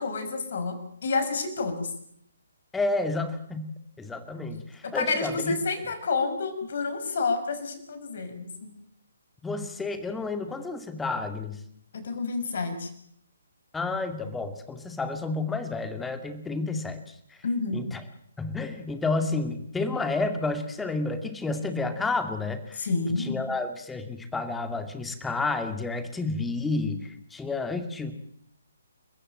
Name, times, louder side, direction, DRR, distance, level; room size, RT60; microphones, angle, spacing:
voice 1, 0.0-1.9 4.8-8.7 11.9-12.9 17.4-17.8 22.8-23.4, left 4 dB, 50° left, 9 dB, 5.5 m, -29 dB
voice 2, 2.7-5.5 9.4-11.6 13.7-17.1 17.7-18.0 18.4-22.9 23.2-28.1, left 3 dB, 5° left, 8 dB, 2.3 m, -30 dB
29.5 x 15.0 x 9.0 m, 0.68 s
figure-of-eight pair, 135°, 0 cm